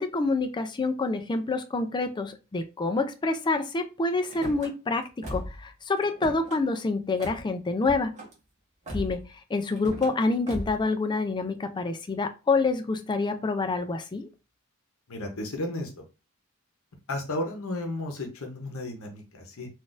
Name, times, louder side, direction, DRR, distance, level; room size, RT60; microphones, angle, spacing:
voice 1, 0.0-5.0 5.3-8.1 8.9-9.2 9.5-14.3, left 3 dB, 20° left, 7 dB, 0.4 m, -27 dB
Car / Slam, 4.2-4.7 5.2-5.6 6.0-6.6 7.2-7.4 7.8-8.3 8.9-9.3 9.7-10.1 10.5-10.8, equal, 35° right, 1.2 m, -37 dB
voice 2, 15.1-16.0 17.1-19.7, left 1 dB, 70° left, 4 dB, 0.8 m, -33 dB
3.9 x 2.5 x 2.4 m, 0.30 s
head